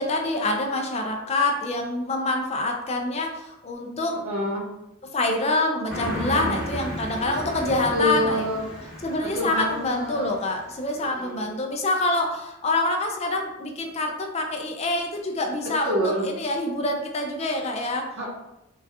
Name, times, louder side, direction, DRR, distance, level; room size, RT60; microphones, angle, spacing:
voice 1, 0.0-4.2 5.0-8.5 9.0-16.0 16.2-18.1, left 2 dB, 30° left, 2 dB, 0.4 m, -26 dB
voice 2, 4.1-4.7 6.1-6.6 7.9-8.9 9.3-10.3 10.9-11.5 15.8-16.3 18.2-18.3, equal, 85° right, -5 dB, 1.4 m, -28 dB
Car passing by, 5.9-10.9, equal, ahead, 1.1 m, -34 dB
4.6 x 2.3 x 2.7 m, 0.91 s
head